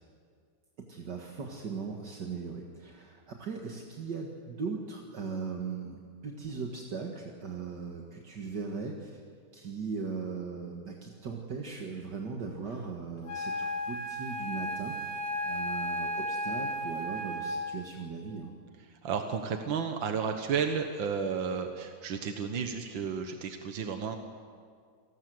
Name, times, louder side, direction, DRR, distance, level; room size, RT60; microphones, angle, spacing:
voice 1, 0.8-9.2 9.5-18.5, right 5 dB, 65° right, 1 dB, 2.4 m, -39 dB
Wind instrument woodwind instrument, 13.3-17.8, equal, 75° left, 2.8 m, -34 dB
voice 2, 19.0-24.2, right 6 dB, 85° right, 5 dB, 2.0 m, -32 dB
28.0 x 19.0 x 7.9 m, 2.1 s
omnidirectional pair, 2.0 m